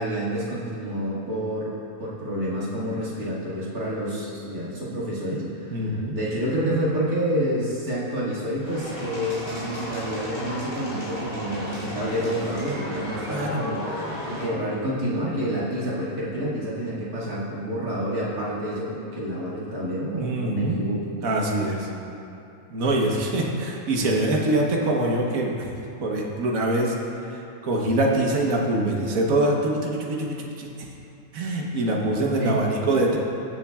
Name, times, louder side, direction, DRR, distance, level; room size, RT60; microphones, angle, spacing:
voice 1, 0.0-21.0 32.4-32.6, right 1 dB, 85° right, -7 dB, 2.6 m, -28 dB
voice 2, 5.7-6.2 13.3-13.6 20.2-20.8 21.2-21.9 22.7-25.7 26.0-27.0 27.6-30.7 31.3-33.2, right 1 dB, 70° right, -1 dB, 1.5 m, -24 dB
sound 1, 8.6-14.5, equal, 25° left, 2.1 m, -34 dB
21.0 x 7.1 x 2.4 m, 2.8 s
omnidirectional pair, 1.5 m